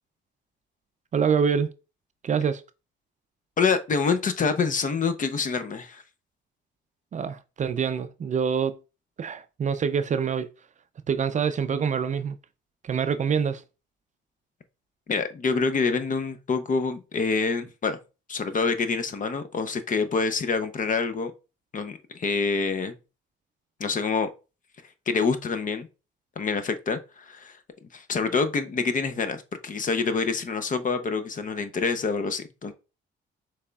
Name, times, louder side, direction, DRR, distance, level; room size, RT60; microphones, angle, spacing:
voice 1, 1.1-1.7 2.2-2.6 7.1-8.8 9.2-10.5 11.1-12.4 12.8-13.6, right 6 dB, 40° right, 0.4 m, -25 dB
voice 2, 3.6-6.0 15.1-18.0 18.3-21.3 21.7-23.0 23.8-24.3 25.1-25.9 26.4-27.6 27.9-32.7, left 4 dB, 40° left, 0.7 m, -26 dB
6.4 x 3.3 x 2.3 m
cardioid pair, 90°, 20 cm